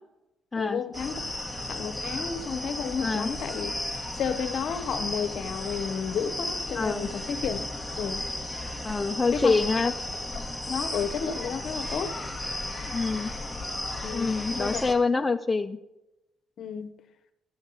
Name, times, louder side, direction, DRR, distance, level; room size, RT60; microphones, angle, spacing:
voice 1, 0.5-1.2 1.7-3.8 4.1-7.6 7.9-8.3 9.3-9.6 10.7-12.2 14.0-14.8 15.1-15.3 16.6-16.9, left 7 dB, 65° left, 0.8 m, -32 dB
sound 1, 0.9-14.9, left 1 dB, 5° left, 1.2 m, -34 dB
voice 2, 6.8-7.1 8.8-9.9 12.9-13.3 14.1-15.8, left 4 dB, 20° left, 0.4 m, -26 dB
sound 2, 7.4-8.4 8.7-9.8 10.3-10.6 11.0-11.5 11.8-13.7, left 2 dB, 40° right, 2.5 m, -44 dB
12.5 x 7.2 x 4.0 m
cardioid pair, 90°, 0 cm